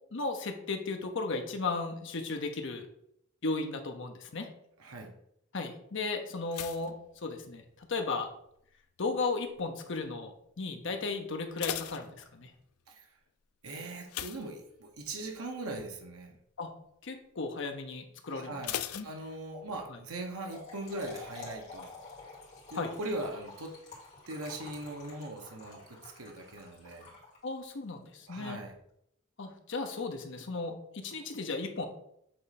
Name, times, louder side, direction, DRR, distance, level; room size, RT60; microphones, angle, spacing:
voice 1, 0.1-2.9 3.4-4.5 5.5-6.9 7.2-8.3 9.0-12.5 16.6-16.7 17.0-18.6 18.9-19.1 19.9-20.0 22.7-22.9 27.4-28.6 29.4-31.9, left 3 dB, 55° left, 5 dB, 0.8 m, -35 dB
voice 2, 4.8-5.1 12.9-13.1 13.6-16.4 18.3-22.0 22.7-23.7 24.3-27.1 28.3-28.8, right 2 dB, 80° right, 2 dB, 1.0 m, -40 dB
sound 1, 6.5-8.0 8.2-8.7 9.3-9.7 10.0-10.1 10.5-10.6 11.2-12.8 14.1-15.2 15.6-15.8 16.2-16.3 18.6-19.8 20.1-20.2, left 11 dB, 90° left, 0.4 m, -40 dB
Trickle dribble / Fill (with liquid), 20.2-27.7, left 3 dB, 30° left, 2.4 m, -49 dB
7.7 x 3.2 x 4.1 m, 0.73 s
head